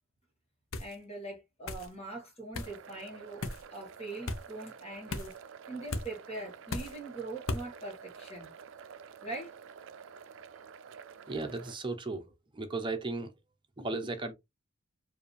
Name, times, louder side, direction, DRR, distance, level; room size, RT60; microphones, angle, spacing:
sound 1, 0.7-1.0 1.7-1.9 2.5-2.7 3.4-3.6 4.3-4.4 5.1-5.4 5.9-6.1 6.7-7.0 7.5-7.7, left 2 dB, 70° left, 0.8 m, -36 dB
voice 1, 0.8-5.4 5.7-8.5 9.2-9.5, right 2 dB, 30° left, 1.5 m, -42 dB
sound 2, 2.6-11.8, right 6 dB, 65° right, 0.4 m, -50 dB
voice 2, 11.3-12.2 12.5-13.3 13.8-14.3, right 3 dB, 25° right, 0.8 m, -35 dB
4.7 x 2.7 x 3.2 m
head